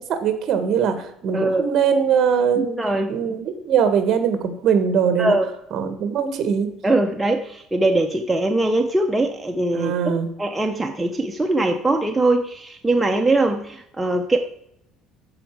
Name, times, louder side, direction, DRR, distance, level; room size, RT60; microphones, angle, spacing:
voice 1, 0.0-2.8 3.1-5.3 5.7-6.7 9.7-10.3, right 7 dB, 45° right, 9 dB, 1.4 m, -21 dB
voice 2, 1.3-1.6 2.6-3.1 5.2-5.5 6.8-9.9 10.4-14.4, right 2 dB, 5° right, 3 dB, 0.6 m, -21 dB
13.5 x 4.9 x 4.6 m, 0.75 s
cardioid pair, 165°, 0 cm